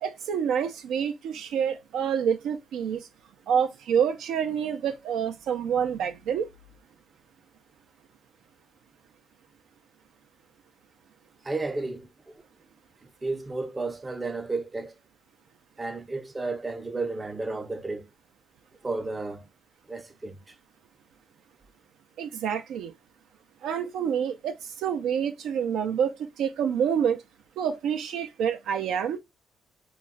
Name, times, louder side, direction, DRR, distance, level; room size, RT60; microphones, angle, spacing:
voice 1, 0.0-3.1 3.5-6.5 22.2-22.9 23.6-27.2 27.6-29.2, right 8 dB, 80° right, 0.3 m, -27 dB
voice 2, 11.4-12.4 13.0-14.9 15.8-18.1 18.8-19.5 19.9-20.6, right 3 dB, 20° right, 0.5 m, -33 dB
2.3 x 2.0 x 3.8 m
cardioid pair, 90°, 0 cm